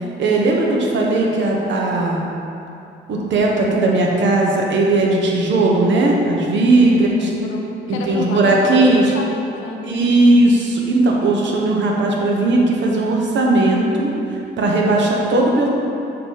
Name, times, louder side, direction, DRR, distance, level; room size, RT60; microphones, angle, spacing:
voice 1, 0.2-2.2 3.1-7.3 7.9-9.1 9.8-15.7, right 2 dB, 70° right, -1 dB, 1.1 m, -17 dB
voice 2, 6.8-10.1, left 4 dB, 80° left, 1 dB, 0.7 m, -29 dB
6.6 x 3.0 x 5.6 m, 2.8 s
cardioid pair, 90°, 20 cm